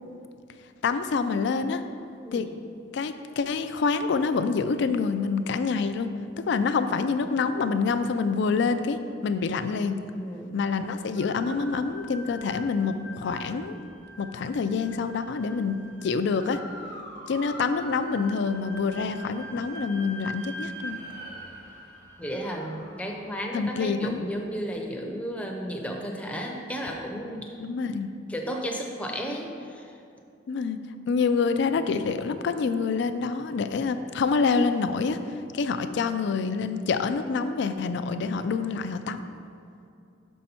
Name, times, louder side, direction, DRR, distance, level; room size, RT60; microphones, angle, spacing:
voice 1, 0.8-1.8 2.3-2.5 2.9-6.1 6.5-10.0 10.5-13.8 14.2-15.8 16.0-16.6 17.3-21.0 23.5-24.2 27.6-28.1 30.5-30.8 31.1-35.2 35.5-39.2, left 5 dB, 60° left, 10 dB, 0.4 m, -26 dB
voice 2, 2.2-2.6 10.1-10.5 22.2-27.5 28.3-29.9, equal, 5° left, 1 dB, 0.6 m, -33 dB
sound 1, 11.2-24.2, equal, 55° right, 1.7 m, -43 dB
6.2 x 5.5 x 4.3 m, 2.6 s
head